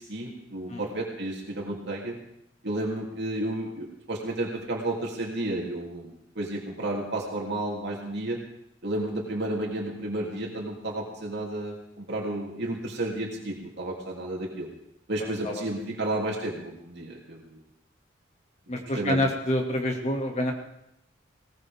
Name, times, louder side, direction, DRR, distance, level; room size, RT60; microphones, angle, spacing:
voice 1, 0.1-2.1 2.6-8.4 8.8-14.7 15.1-17.6 18.9-19.2, right 1 dB, 60° right, -2 dB, 3.2 m, -32 dB
voice 2, 15.2-15.6 18.7-20.5, left 1 dB, 35° left, 2 dB, 2.4 m, -28 dB
20.0 x 19.0 x 3.7 m, 0.82 s
head